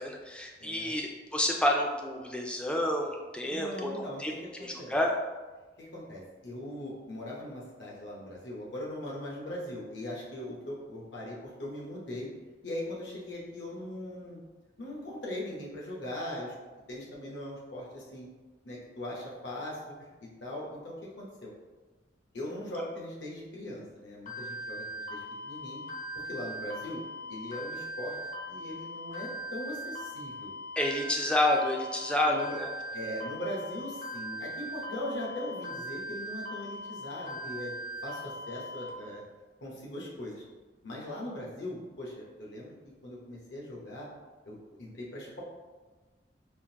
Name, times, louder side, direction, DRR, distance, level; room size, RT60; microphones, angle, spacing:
voice 1, 0.0-4.3 4.6-5.1 30.8-32.7, left 1 dB, 5° left, 1 dB, 0.3 m, -29 dB
voice 2, 0.6-1.0 3.5-5.0 5.8-12.3 12.6-14.4 14.8-16.5 16.9-18.3 18.6-21.5 22.3-25.8 26.2-27.0 27.3-28.2 28.5-30.5 32.3-32.6 32.9-37.7 38.0-39.2 39.6-40.4 40.8-42.7 43.0-44.1 44.5-45.4, left 1 dB, 70° left, -4 dB, 0.9 m, -40 dB
sound 1, 24.3-38.9, equal, 45° left, 0.6 m, -40 dB
3.6 x 2.5 x 2.7 m, 1.3 s
head